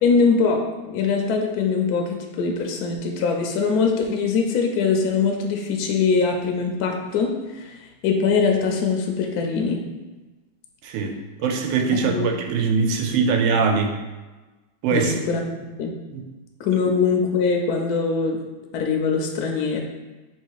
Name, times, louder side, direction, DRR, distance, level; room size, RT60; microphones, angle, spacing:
voice 1, 0.0-9.8 12.1-12.3 14.9-15.9 16.6-18.4 18.7-19.8, left 5 dB, 75° left, 2 dB, 0.9 m, -22 dB
voice 2, 10.8-14.0 14.8-15.1 16.1-16.3, right 5 dB, 85° right, 4 dB, 1.3 m, -22 dB
3.2 x 2.9 x 4.6 m, 1.2 s
omnidirectional pair, 2.0 m